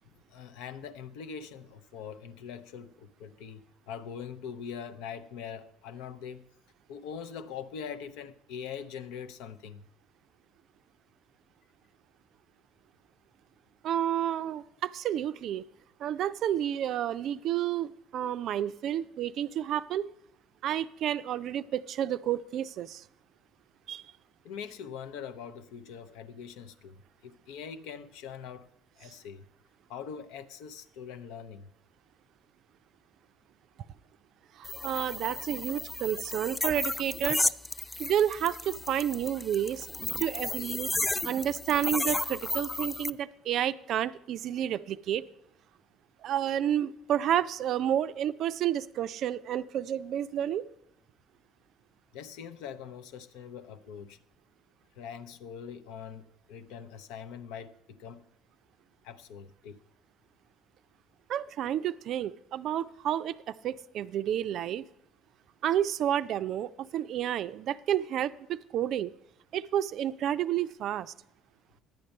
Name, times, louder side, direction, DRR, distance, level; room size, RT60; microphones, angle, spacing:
voice 1, 0.3-6.5 6.9-9.9 24.4-28.7 29.0-29.5 29.9-31.7 52.1-54.2 55.0-58.2 59.0-59.8, left 7 dB, 70° left, 0.6 m, -43 dB
voice 2, 13.8-15.6 16.0-20.0 20.6-23.0 23.9-24.0 34.6-37.5 38.0-39.9 40.2-40.9 41.2-45.2 46.2-50.6 61.3-64.9 65.6-69.1 69.5-71.1, right 10 dB, 55° right, 0.4 m, -30 dB
sound 1, 34.6-43.1, left 2 dB, 15° left, 0.4 m, -33 dB
10.5 x 8.5 x 5.3 m
hypercardioid pair, 60°, 0 cm